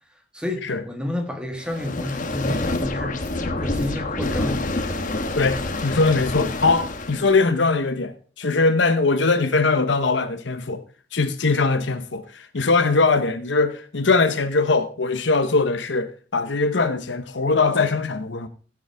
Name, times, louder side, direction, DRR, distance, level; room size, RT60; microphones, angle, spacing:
voice 1, 0.3-4.8, left 1 dB, 5° right, 1.7 m, -30 dB
sound 1, 1.6-7.4, left 2 dB, 45° left, 1.2 m, -27 dB
voice 2, 5.3-10.8 11.1-18.5, left 3 dB, 65° left, 1.0 m, -21 dB
15.5 x 7.2 x 3.5 m
head